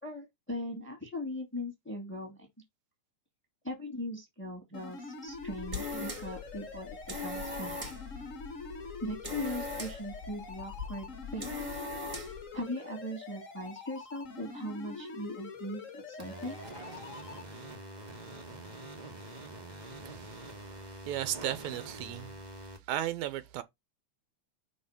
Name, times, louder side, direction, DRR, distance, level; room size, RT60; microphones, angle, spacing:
voice 1, 0.0-2.5 3.6-8.0 9.0-11.8 12.5-16.6, left 1 dB, 5° left, 1.7 m, -40 dB
sound 1, 4.7-17.4, left 4 dB, 60° left, 0.8 m, -45 dB
sound 2, 5.3-12.5, left 3 dB, 20° right, 1.2 m, -40 dB
sound 3, 16.2-22.8, right 2 dB, 50° right, 0.5 m, -45 dB
voice 2, 20.0-20.4 20.9-22.4 22.9-23.6, right 12 dB, 80° right, 2.0 m, -35 dB
5.5 x 3.5 x 5.8 m
omnidirectional pair, 3.5 m